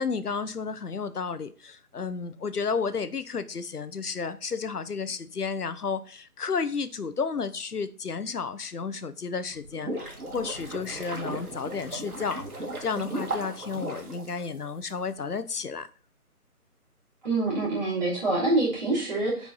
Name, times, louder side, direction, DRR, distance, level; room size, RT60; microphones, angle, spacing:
voice 1, 0.0-15.9, left 5 dB, 85° left, 12 dB, 0.9 m, -32 dB
sound 1, 9.5-14.9, right 2 dB, 75° right, 2.3 m, -36 dB
voice 2, 17.2-19.5, right 2 dB, 30° right, -5 dB, 3.3 m, -26 dB
8.4 x 4.7 x 4.1 m, 0.40 s
figure-of-eight pair, 155°, 45 cm